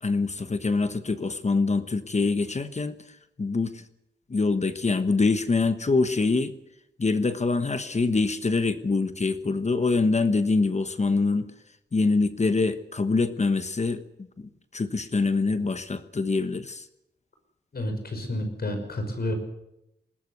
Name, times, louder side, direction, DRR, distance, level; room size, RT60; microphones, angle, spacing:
voice 1, 0.0-3.8 4.3-6.5 7.0-11.5 11.9-14.0 14.4-16.8, left 3 dB, 40° left, 10 dB, 1.2 m, -25 dB
voice 2, 17.7-19.3, left 1 dB, 55° left, 6 dB, 5.8 m, -30 dB
21.0 x 18.5 x 8.1 m, 0.84 s
wide cardioid pair, 135°, 19 cm